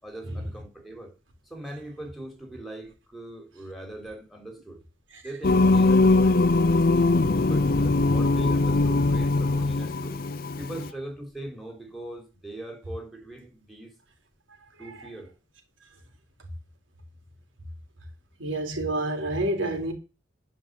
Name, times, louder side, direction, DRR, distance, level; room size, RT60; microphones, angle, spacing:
voice 1, 0.0-1.1 1.5-4.8 5.2-7.1 7.4-10.2 10.6-13.9 14.8-15.3, right 1 dB, ahead, 4.1 m, -40 dB
Singing, 5.4-10.9, left 2 dB, 50° left, 0.6 m, -21 dB
voice 2, 18.4-19.9, right 1 dB, 90° right, 3.6 m, -28 dB
11.0 x 5.4 x 8.4 m
head